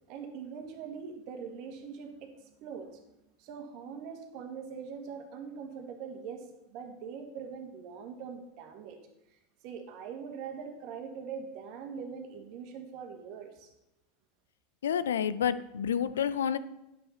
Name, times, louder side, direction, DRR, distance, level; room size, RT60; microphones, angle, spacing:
voice 1, 0.1-3.0 3.4-9.0 9.3-13.7, right 6 dB, 60° right, 5 dB, 1.6 m, -42 dB
voice 2, 14.8-16.6, left 8 dB, 85° left, 15 dB, 0.4 m, -29 dB
9.4 x 7.4 x 4.2 m, 0.91 s
hypercardioid pair, 95°, 0 cm